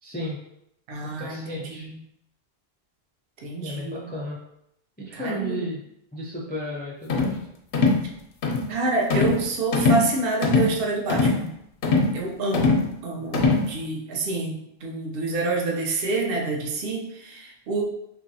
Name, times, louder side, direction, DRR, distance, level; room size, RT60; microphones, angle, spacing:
voice 1, 0.0-0.4 1.2-1.9 3.6-4.4 5.0-5.8 6.1-7.4, equal, 15° left, -5 dB, 0.3 m, -33 dB
voice 2, 0.9-2.0 3.4-4.1 5.2-5.6 8.7-11.5 12.1-17.8, right 3 dB, 65° right, 0 dB, 0.8 m, -28 dB
sound 1, 7.1-7.4 7.7-8.0 8.4-8.7 9.1-9.4 9.7-10.1 10.4-10.7 11.1-11.4 11.8-12.2 12.5-12.9 13.3-13.7, left 3 dB, 80° left, 0.8 m, -21 dB
2.9 x 2.5 x 2.6 m, 0.79 s
omnidirectional pair, 1.1 m